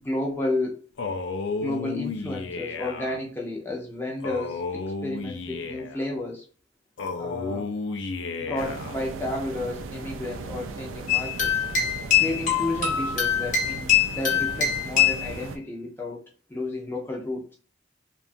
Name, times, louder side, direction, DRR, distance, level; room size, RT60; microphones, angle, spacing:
voice 1, 0.0-0.8 1.6-6.4 7.2-7.7 8.5-11.5 12.2-16.2 16.5-17.5, left 2 dB, 10° left, -2 dB, 0.5 m, -32 dB
Male speech man speaking, 1.0-3.2 4.2-6.1 7.0-9.0, left 4 dB, 65° left, 0.4 m, -32 dB
sound 1, 8.6-15.6, right 4 dB, 90° right, 0.3 m, -37 dB
sound 2, 11.1-15.3, left 8 dB, 40° left, 0.8 m, -23 dB
2.8 x 2.2 x 2.5 m, 0.39 s
head